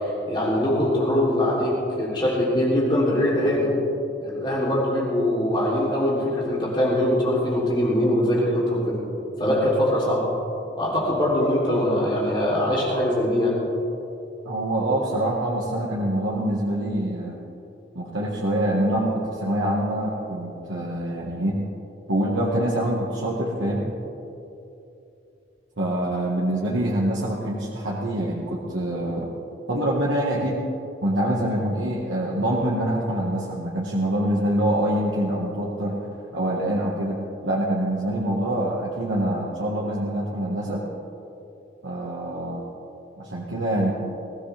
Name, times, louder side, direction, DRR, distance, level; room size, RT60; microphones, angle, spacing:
voice 1, 0.0-3.7 4.2-8.8 9.4-10.3 10.7-13.5, left 1 dB, 25° left, -6 dB, 3.4 m, -22 dB
voice 2, 14.4-17.4 17.9-21.6 22.1-23.9 25.8-29.3 29.7-30.6 31.0-36.0 36.3-40.9 41.8-42.7 43.2-43.9, right 1 dB, 90° right, -3 dB, 1.7 m, -25 dB
21.0 x 16.0 x 3.5 m, 2.8 s
head